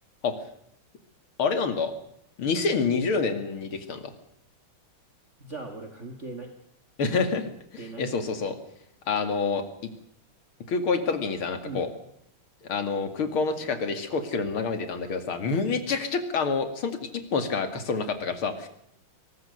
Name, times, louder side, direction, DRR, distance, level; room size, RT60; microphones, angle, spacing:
voice 1, 1.4-1.9 2.4-4.1 7.0-8.6 9.1-9.6 10.7-11.9 12.6-18.7, left 4 dB, 75° left, 9 dB, 3.1 m, -27 dB
voice 2, 5.4-6.5 7.8-8.3 11.6-11.8, right 3 dB, 35° right, 5 dB, 2.2 m, -39 dB
22.0 x 19.5 x 6.7 m, 0.74 s
omnidirectional pair, 2.4 m